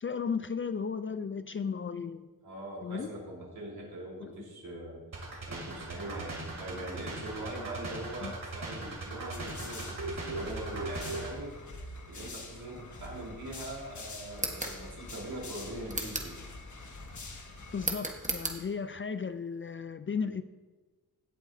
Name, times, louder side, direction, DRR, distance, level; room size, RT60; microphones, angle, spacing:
voice 1, 0.0-2.3 2.8-3.1 4.2-4.5 8.2-8.3 17.7-20.4, left 6 dB, 35° left, 12 dB, 0.4 m, -35 dB
voice 2, 2.4-5.0 5.5-11.5 12.1-16.4, right 1 dB, 75° right, -3 dB, 3.7 m, -42 dB
sound 1, 5.1-11.3, right 2 dB, 60° right, 2.9 m, -39 dB
sound 2, 9.3-17.9, left 2 dB, 50° left, 1.4 m, -45 dB
sound 3, 14.3-14.8 15.9-16.4 17.8-18.6, right 2 dB, 20° right, 1.3 m, -34 dB
16.5 x 8.0 x 2.7 m, 1.3 s
wide cardioid pair, 90°, 37 cm